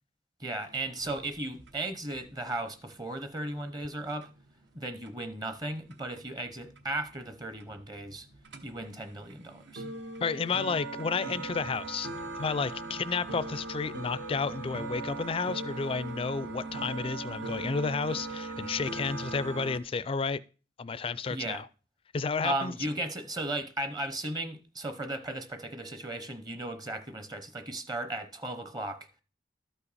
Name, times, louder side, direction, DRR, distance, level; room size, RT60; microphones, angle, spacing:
voice 1, 0.4-4.3 4.7-8.3 8.6-9.8 21.3-21.6 22.4-29.1, right 2 dB, 20° right, 0.7 m, -36 dB
sound 1, 0.6-19.8, right 3 dB, 75° right, 1.0 m, -40 dB
voice 2, 10.2-12.1 12.4-20.4 20.8-21.7 22.1-22.7, left 5 dB, 30° left, 0.3 m, -31 dB
12.5 x 5.7 x 4.1 m
head